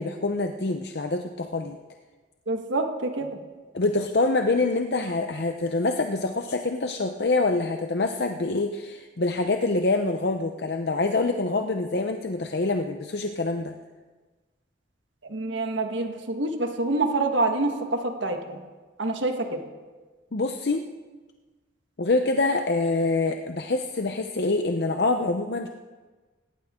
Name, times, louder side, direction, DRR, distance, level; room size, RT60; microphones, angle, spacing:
voice 1, 0.0-1.8 3.7-13.7 20.3-20.9 22.0-25.7, left 3 dB, 60° left, 5 dB, 0.7 m, -25 dB
voice 2, 2.5-3.3 15.2-18.6 19.0-19.6, right 2 dB, 80° right, 4 dB, 1.6 m, -26 dB
18.0 x 18.0 x 3.7 m, 1.3 s
head